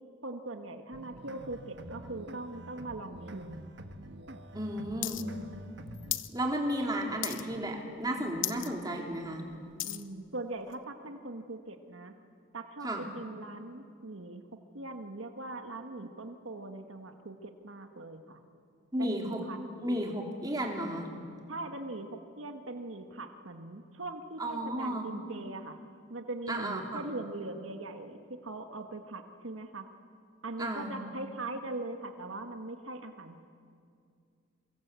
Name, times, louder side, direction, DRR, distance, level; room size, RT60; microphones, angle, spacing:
voice 1, 0.2-3.7 9.8-12.1 12.5-14.4 14.7-18.4 19.0-19.6 21.5-25.8 26.1-29.9 30.4-33.4, right 2 dB, 85° right, 6 dB, 1.7 m, -41 dB
sound 1, 0.9-6.2, right 1 dB, 60° right, 1.4 m, -46 dB
voice 2, 4.5-5.2 6.3-9.5 12.8-13.0 18.9-19.4 19.8-21.1 24.4-25.1 26.5-27.0 30.6-30.9, right 1 dB, 20° right, 1 dB, 3.4 m, -33 dB
sound 2, 5.0-5.2 5.5-6.3 6.7-6.9 7.2-7.7 8.0-8.1 8.4-8.7 9.1-10.1 10.7-10.8, left 14 dB, 75° left, 0.9 m, -35 dB
27.5 x 23.0 x 8.4 m, 2.3 s
head